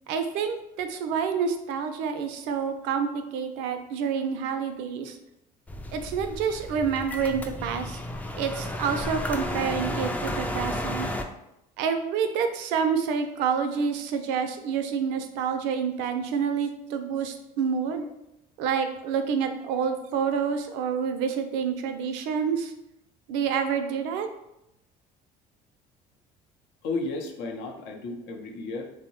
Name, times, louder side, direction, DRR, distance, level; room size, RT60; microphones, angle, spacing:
voice 1, 0.1-5.2 5.9-8.0 8.4-11.1 11.8-18.1 18.6-22.7 23.3-24.3, right 6 dB, 70° right, 7 dB, 0.4 m, -28 dB
sound 1, 5.7-11.2, left 1 dB, 10° left, 0.3 m, -32 dB
voice 2, 26.8-28.8, left 3 dB, 65° left, 2 dB, 0.6 m, -33 dB
2.7 x 2.0 x 3.0 m, 0.85 s
hypercardioid pair, 65°, 19 cm